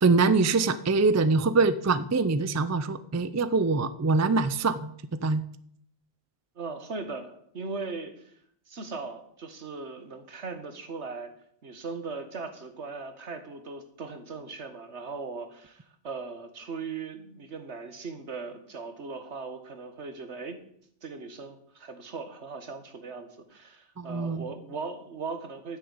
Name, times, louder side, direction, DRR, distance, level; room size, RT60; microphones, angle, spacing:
voice 1, 0.0-4.9 5.2-5.4 24.0-24.4, right 3 dB, 25° right, 14 dB, 0.3 m, -24 dB
voice 2, 6.6-8.3 8.7-11.3 11.6-20.6 21.0-25.8, right 4 dB, 75° right, 8 dB, 1.8 m, -39 dB
9.9 x 6.6 x 8.8 m, 0.66 s
omnidirectional pair, 1.2 m